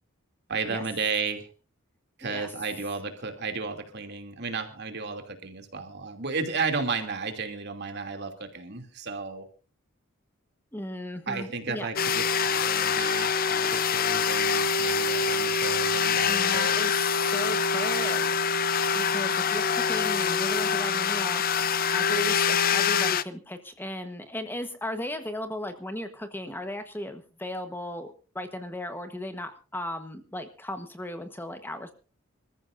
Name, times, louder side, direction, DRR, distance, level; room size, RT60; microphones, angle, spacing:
voice 1, 0.5-1.5 2.2-9.5 11.3-16.8, right 4 dB, 55° right, 6 dB, 2.8 m, -33 dB
voice 2, 2.2-2.5 10.7-11.9 16.2-18.4 18.9-21.4 21.9-31.9, left 1 dB, 10° left, 8 dB, 1.2 m, -36 dB
sound 1, 12.0-23.2, left 6 dB, 45° left, 0.6 m, -25 dB
27.0 x 14.5 x 2.6 m, 0.35 s
head